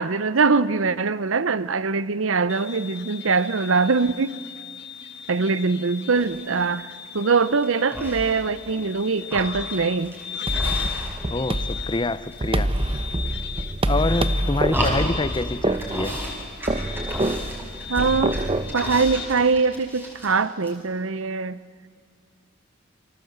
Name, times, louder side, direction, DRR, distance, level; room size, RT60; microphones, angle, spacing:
voice 1, 0.0-4.4 5.3-6.9 7.1-10.1 17.9-18.5 18.7-21.6, right 4 dB, 80° right, 16 dB, 0.8 m, -22 dB
sound 1, 2.5-19.3, left 8 dB, 55° left, 1.5 m, -37 dB
sound 2, 6.1-6.5 7.0-7.6 7.9-8.9 9.2-11.4 11.6-12.4 12.7-13.4 13.9-15.4 15.7-16.3 16.6-20.4 20.6-20.7, equal, 10° right, 5.9 m, -32 dB
sound 3, 10.5-18.7, right 1 dB, 25° right, 0.9 m, -26 dB
voice 2, 11.3-12.7 13.9-16.2, left 2 dB, 25° left, 15 dB, 0.6 m, -26 dB
29.5 x 25.0 x 8.1 m, 2.1 s
head